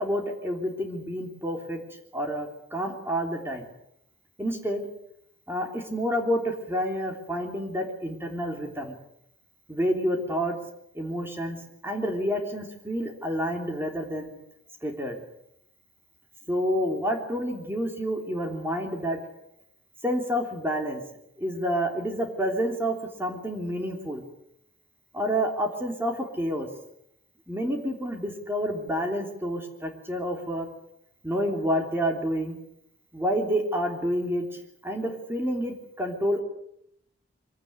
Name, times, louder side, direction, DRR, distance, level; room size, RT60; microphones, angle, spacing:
voice 1, 0.0-1.8 2.1-3.7 4.4-4.9 5.5-8.9 9.7-10.6 10.9-14.3 14.8-15.2 16.5-19.2 20.0-21.0 21.4-24.2 25.1-26.7 27.5-30.7 31.2-32.6 33.1-36.4, equal, 10° right, 3 dB, 3.3 m, -29 dB
24.5 x 17.0 x 9.6 m, 0.76 s
head